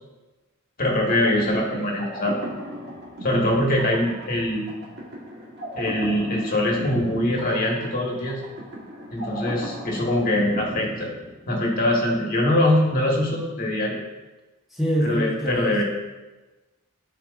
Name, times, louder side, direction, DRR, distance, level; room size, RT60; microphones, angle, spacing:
voice 1, 0.8-2.4 3.2-4.7 5.7-8.4 9.1-11.1 11.5-14.0 15.0-15.8, left 1 dB, 40° left, -1 dB, 1.5 m, -23 dB
sound 1, 1.1-11.8, right 1 dB, 50° right, 1.4 m, -37 dB
voice 2, 14.7-15.8, equal, ahead, -5 dB, 1.1 m, -25 dB
13.5 x 4.5 x 2.5 m, 1.2 s
head